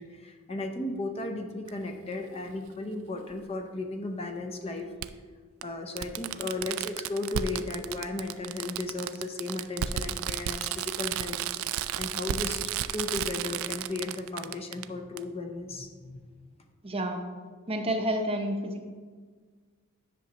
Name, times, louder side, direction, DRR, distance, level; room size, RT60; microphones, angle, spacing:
voice 1, 0.0-4.9 5.6-12.6 12.9-16.2, left 2 dB, 25° left, 3 dB, 0.6 m, -35 dB
Fireworks, 1.7-1.8 3.3-3.4 5.0-5.1 5.6-5.7 6.0-14.8 15.2-15.3, right 11 dB, 65° right, 0.3 m, -33 dB
voice 2, 16.8-17.2 17.7-18.9, right 1 dB, 25° right, 4 dB, 0.7 m, -29 dB
10.0 x 6.3 x 2.9 m, 1.5 s
head